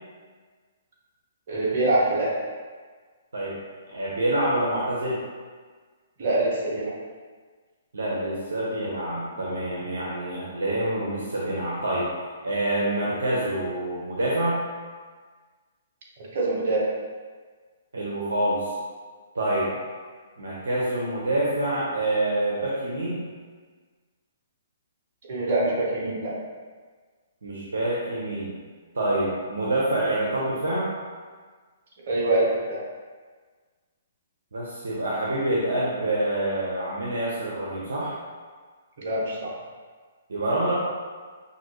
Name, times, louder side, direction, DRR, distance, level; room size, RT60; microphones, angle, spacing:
voice 1, 1.5-2.4 6.2-6.9 16.3-16.9 25.3-26.3 32.1-32.8 39.0-39.6, right 2 dB, 50° right, -5 dB, 1.3 m, -24 dB
voice 2, 3.9-5.2 7.9-12.1 12.4-14.6 17.9-18.7 19.3-19.7 20.4-23.2 27.4-28.5 28.9-30.9 34.5-38.1 40.3-40.7, right 1 dB, 75° right, -6 dB, 0.9 m, -26 dB
5.6 x 2.7 x 3.1 m, 1.5 s
hypercardioid pair, 130°, 0 cm